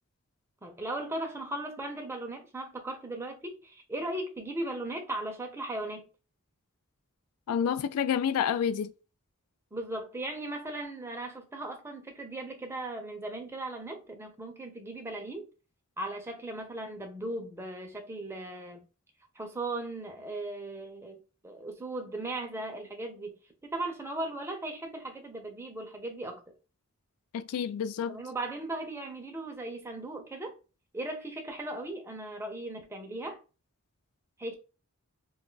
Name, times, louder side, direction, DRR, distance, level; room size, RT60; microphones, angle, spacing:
voice 1, 0.6-6.0 9.7-15.5 16.0-18.8 19.4-21.2 21.4-26.4 28.1-30.6 30.9-33.4 34.4-34.5, right 2 dB, 10° right, 0.5 m, -37 dB
voice 2, 7.5-8.9 27.3-28.2, left 8 dB, 85° left, 0.3 m, -29 dB
2.4 x 2.3 x 3.8 m
head